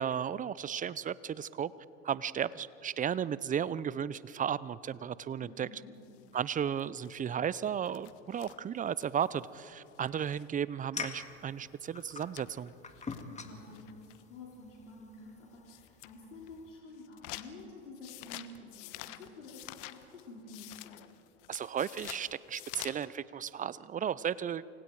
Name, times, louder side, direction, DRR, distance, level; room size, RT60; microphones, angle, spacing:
voice 1, 0.0-1.7 2.0-5.7 6.3-12.7 21.5-24.6, right 8 dB, 20° right, 19 dB, 0.6 m, -34 dB
voice 2, 5.4-5.9 13.3-21.0, left 2 dB, 85° left, -3 dB, 4.0 m, -50 dB
sound 1, 6.0-10.6 10.9-11.0 11.2-11.3 11.6-11.7 12.0-14.3 14.9-15.0 15.5-16.1 16.5-23.1, left 17 dB, 55° left, 1.3 m, -49 dB
sound 2, 10.9-16.8, left 5 dB, 20° left, 2.1 m, -46 dB
29.0 x 25.0 x 4.8 m, 2.8 s
hypercardioid pair, 90°, 36 cm